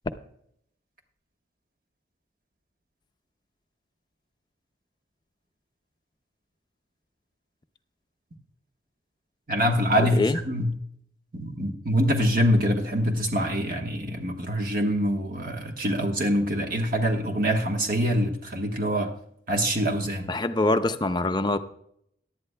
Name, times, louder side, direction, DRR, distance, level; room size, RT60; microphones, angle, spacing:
voice 1, 9.5-10.7 11.3-19.1 19.5-20.3, equal, 50° right, 2 dB, 1.2 m, -25 dB
voice 2, 10.0-10.4 20.3-21.6, left 2 dB, 25° left, 9 dB, 0.5 m, -24 dB
18.0 x 11.5 x 2.2 m, 0.71 s
head